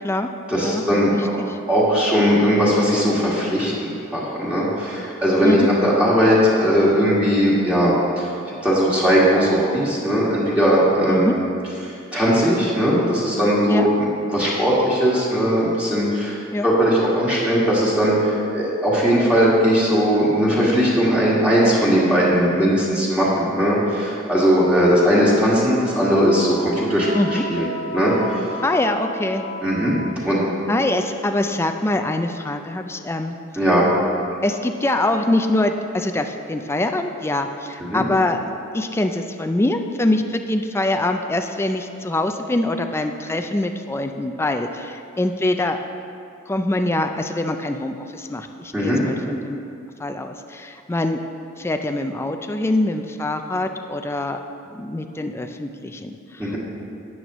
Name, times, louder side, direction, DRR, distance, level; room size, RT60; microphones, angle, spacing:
voice 1, 0.5-1.4 1.7-8.3 8.6-11.4 11.8-16.4 16.6-28.1 29.6-29.9 30.2-30.4 33.6-33.9 37.8-38.0 48.7-49.0 56.4-56.6, equal, 5° right, -8 dB, 1.8 m, -19 dB
voice 2, 1.2-1.6 5.4-5.7 11.1-11.3 13.7-13.9 16.5-16.7 27.1-27.4 28.6-29.5 30.7-33.4 34.4-38.4 38.7-45.8 46.5-49.6 50.0-51.2 51.6-54.4 54.7-56.5, left 1 dB, 15° left, 6 dB, 0.4 m, -24 dB
Wind instrument woodwind instrument, 25.8-30.3, equal, 85° right, 1.6 m, -33 dB
12.5 x 8.7 x 3.0 m, 2.5 s
head